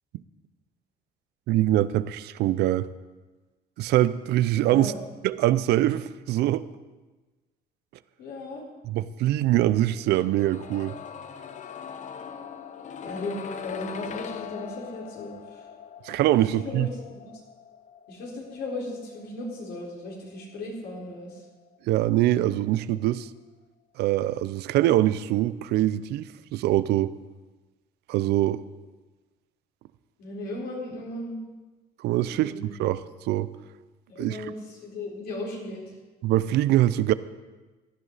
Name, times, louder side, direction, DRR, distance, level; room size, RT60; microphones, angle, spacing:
voice 1, 1.5-2.9 3.8-4.9 5.2-6.7 8.9-11.0 16.0-16.9 21.9-23.3 24.0-27.1 28.1-28.6 32.0-33.5 34.2-34.4 36.2-37.1, right 14 dB, 80° right, 16 dB, 0.5 m, -23 dB
voice 2, 4.7-5.0 8.2-8.6 13.0-15.7 16.4-17.4 18.1-21.4 30.2-31.4 32.3-32.7 34.1-35.9, left 2 dB, 75° left, -3 dB, 4.3 m, -36 dB
sound 1, 10.1-22.0 22.2-22.3, left 7 dB, 45° left, 0.8 m, -42 dB
16.0 x 11.0 x 4.1 m, 1.2 s
cardioid pair, 110°, 17 cm